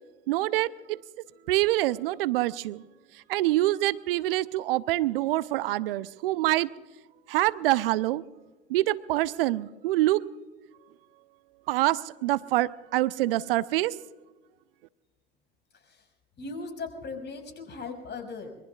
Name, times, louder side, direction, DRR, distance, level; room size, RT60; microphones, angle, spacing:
voice 1, 0.3-1.0 1.5-2.8 3.3-6.7 7.3-8.2 8.7-10.2 11.7-13.9, right 16 dB, 70° right, 18 dB, 0.6 m, -25 dB
voice 2, 15.7-16.1 16.4-18.5, left 4 dB, 35° left, 4 dB, 5.9 m, -38 dB
26.0 x 23.0 x 2.4 m, 1.2 s
hypercardioid pair, 70°, 30 cm